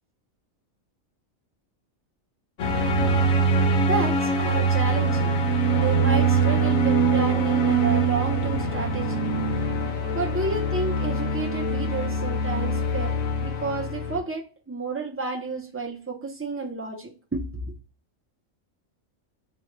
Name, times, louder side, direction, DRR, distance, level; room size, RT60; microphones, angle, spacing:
sound 1, 2.6-14.2, right 3 dB, 70° left, 1.1 m, -23 dB
voice 1, 3.8-5.3 5.7-9.2 10.1-17.7, right 3 dB, 20° right, 0.3 m, -31 dB
4.1 x 2.2 x 3.0 m
omnidirectional pair, 1.4 m